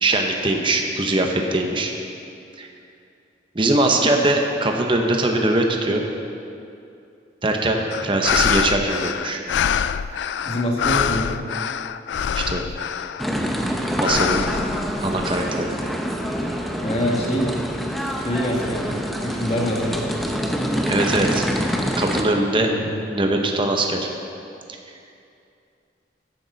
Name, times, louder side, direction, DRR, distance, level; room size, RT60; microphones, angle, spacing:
voice 1, 0.0-1.9 2.6-2.7 3.5-6.0 7.4-9.4 12.3-12.6 14.0-14.4 15.0-15.7 20.9-21.4 22.0-22.7 23.1-24.1, right 2 dB, 30° right, 2 dB, 0.9 m, -21 dB
sound 1, 7.9-13.4 14.0-15.4, left 8 dB, 85° left, 0.3 m, -25 dB
voice 2, 10.4-11.4 16.8-17.5 18.0-18.9 19.2-20.0 22.6-22.9, equal, 35° left, -2 dB, 1.8 m, -25 dB
sound 2, 13.2-22.2, equal, ahead, 0.7 m, -26 dB
13.5 x 10.0 x 4.0 m, 2.6 s
head